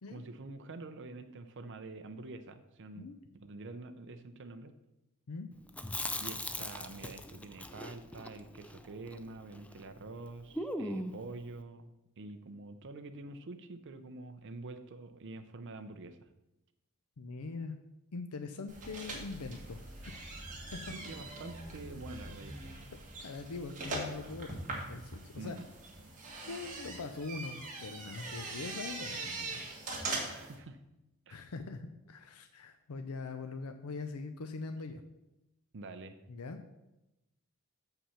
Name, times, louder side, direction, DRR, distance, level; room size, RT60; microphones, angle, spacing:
voice 1, 0.1-3.1 3.3-4.7 6.2-16.3 20.8-22.9 25.4-25.7 30.2-30.8 31.3-31.4 35.7-36.2, right 3 dB, 55° right, 8 dB, 0.6 m, -47 dB
Chewing mastication, 5.7-9.9 10.1-10.2 10.5-11.3, left 1 dB, 5° left, 0.4 m, -40 dB
voice 2, 17.2-17.8 18.1-20.1 20.7-20.9 23.2-24.6 24.9-25.6 26.5-29.6 31.3-35.0 36.3-36.7, left 4 dB, 75° left, 8 dB, 0.6 m, -42 dB
sound 1, 18.7-30.5, right 2 dB, 35° right, 1.9 m, -42 dB
7.1 x 5.7 x 5.6 m, 0.93 s
head